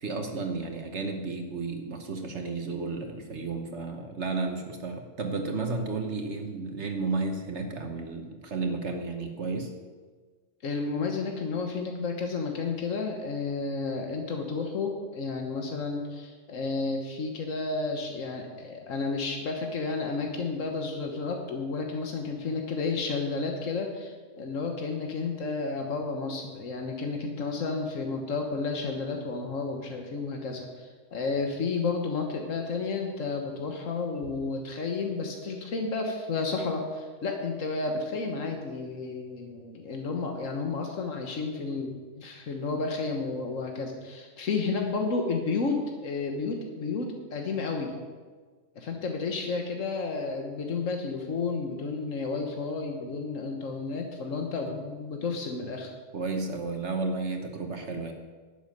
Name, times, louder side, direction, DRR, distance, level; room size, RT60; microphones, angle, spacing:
voice 1, 0.0-9.7 56.1-58.1, right 3 dB, 65° right, 4 dB, 1.4 m, -32 dB
voice 2, 10.6-48.0 48.8-55.9, left 4 dB, 90° left, 3 dB, 1.6 m, -31 dB
11.5 x 7.0 x 9.2 m, 1.4 s
omnidirectional pair, 1.3 m